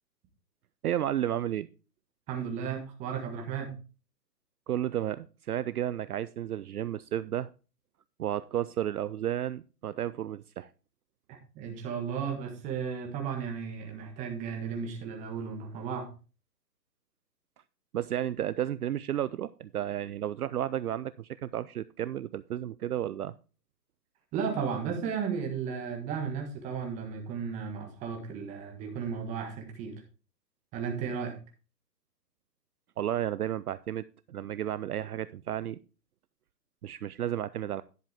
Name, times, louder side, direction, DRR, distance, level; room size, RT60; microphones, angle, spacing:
voice 1, 0.8-1.7 4.7-7.5 8.2-10.7 17.9-23.3 33.0-35.8 36.8-37.8, right 11 dB, 65° right, 16 dB, 0.5 m, -32 dB
voice 2, 2.3-3.7 11.3-16.1 24.3-29.9 30.7-31.3, right 6 dB, 15° right, 3 dB, 1.5 m, -34 dB
10.5 x 7.4 x 3.5 m, 0.33 s
hypercardioid pair, 150°, 50 cm